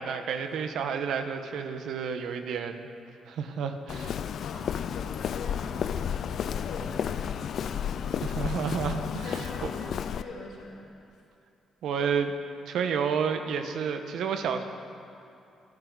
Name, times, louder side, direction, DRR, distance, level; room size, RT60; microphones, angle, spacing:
voice 1, 0.0-2.9 3.3-4.2 8.2-9.4 11.8-12.3 12.7-14.6, right 6 dB, 75° right, 7 dB, 1.3 m, -30 dB
Walk footsteps, 3.9-10.2, left 8 dB, 65° left, 0.5 m, -32 dB
voice 2, 4.4-8.1 8.6-10.9, left 2 dB, 85° left, -4 dB, 3.6 m, -43 dB
27.0 x 11.0 x 4.1 m, 2.6 s
cardioid pair, 90°, 0 cm